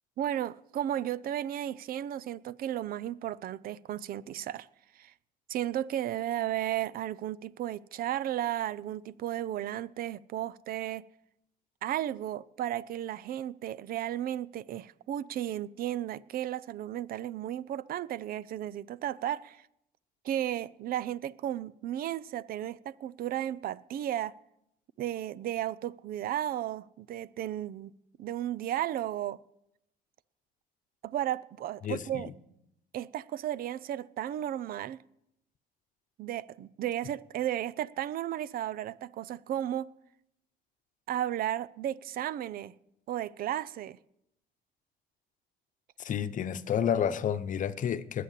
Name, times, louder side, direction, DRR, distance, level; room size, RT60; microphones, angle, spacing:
voice 1, 0.2-4.7 5.0-5.1 5.5-11.0 11.8-19.6 20.2-24.3 25.0-27.9 28.2-29.4 31.0-32.3 32.9-35.0 36.2-39.9 41.1-42.7 43.1-44.0, right 12 dB, 60° right, 0.6 m, -34 dB
voice 2, 31.8-32.3 46.0-48.2, left 8 dB, 50° left, 0.9 m, -30 dB
20.5 x 8.5 x 7.6 m
cardioid pair, 110°, 17 cm